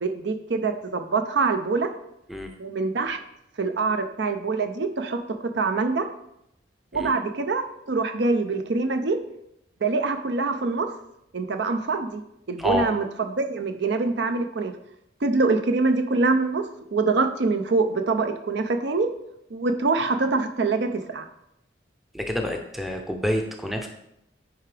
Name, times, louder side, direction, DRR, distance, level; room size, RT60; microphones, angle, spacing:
voice 1, 0.0-1.9 2.6-3.2 3.6-6.1 6.9-9.2 9.8-10.9 11.3-12.2 12.5-14.7 15.2-19.1 19.5-21.3, right 3 dB, 65° right, 7 dB, 0.5 m, -24 dB
voice 2, 22.1-23.9, equal, ahead, 3 dB, 0.6 m, -27 dB
9.3 x 4.6 x 3.3 m, 0.81 s
head